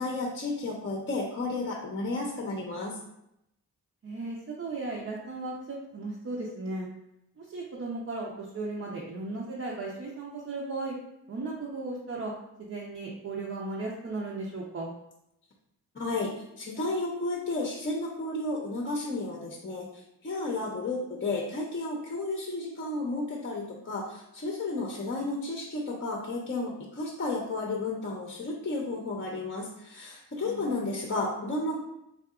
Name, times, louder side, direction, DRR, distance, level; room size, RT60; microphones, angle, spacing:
voice 1, 0.0-3.0 15.9-31.8, left 2 dB, 30° left, -1 dB, 0.8 m, -32 dB
voice 2, 4.0-6.9 7.4-11.0 11.3-12.3 12.6-14.9 30.4-30.8, right 2 dB, 35° right, -4 dB, 0.7 m, -36 dB
3.6 x 2.6 x 2.4 m, 0.82 s
hypercardioid pair, 40°, 41 cm